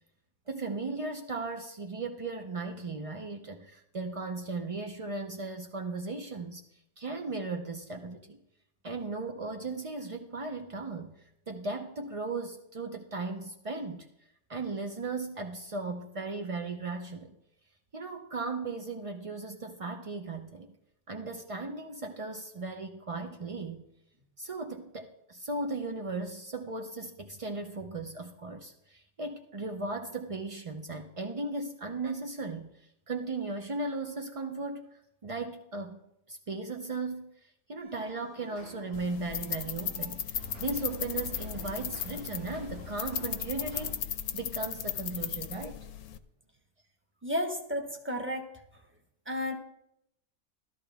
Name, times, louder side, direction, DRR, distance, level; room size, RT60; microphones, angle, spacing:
voice 1, 0.5-8.4 8.8-14.1 14.5-17.3 17.9-20.7 21.1-23.8 24.4-36.0 36.3-44.0 44.3-45.9, right 3 dB, 50° right, 4 dB, 0.3 m, -37 dB
sound 1, 37.8-43.9, left 1 dB, 75° right, 5.3 m, -47 dB
sound 2, 38.9-46.2, left 10 dB, 85° left, 1.2 m, -36 dB
voice 2, 47.2-48.5 49.2-49.5, left 1 dB, 10° right, 3 dB, 1.2 m, -32 dB
13.5 x 12.5 x 3.5 m, 0.80 s
omnidirectional pair, 1.6 m